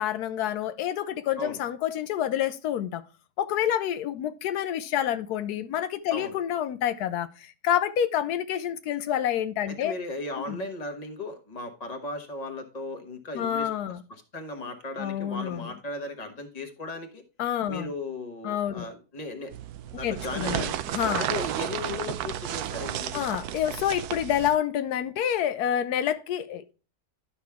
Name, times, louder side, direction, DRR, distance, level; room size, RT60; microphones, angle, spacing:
voice 1, 0.0-3.0 3.4-9.9 10.5-10.6 13.3-14.0 15.0-15.7 17.4-17.9 18.4-18.9 20.0-21.3 23.1-26.7, left 10 dB, 85° left, 1.2 m, -28 dB
voice 2, 9.7-13.7 14.1-17.2 17.7-19.5 19.9-20.8 21.2-23.2, left 2 dB, 25° left, 1.3 m, -36 dB
sound 1, 19.5-24.6, right 11 dB, 85° right, 1.1 m, -32 dB
11.5 x 5.7 x 3.5 m
omnidirectional pair, 1.6 m